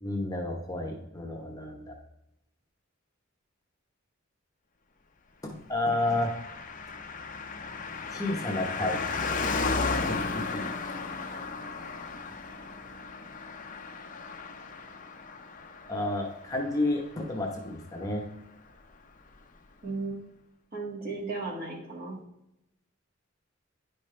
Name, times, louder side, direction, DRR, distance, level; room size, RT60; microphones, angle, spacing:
voice 1, 0.0-1.9 5.4-6.3 8.1-9.0 10.1-10.7 15.9-18.3, left 2 dB, 15° left, 0 dB, 1.0 m, -31 dB
Car passing by, 5.9-17.8 18.0-18.1, left 4 dB, 40° left, 0.8 m, -35 dB
voice 2, 19.8-20.2 20.7-22.2, right 3 dB, 45° right, -1 dB, 2.0 m, -35 dB
10.5 x 5.2 x 3.3 m, 0.85 s
head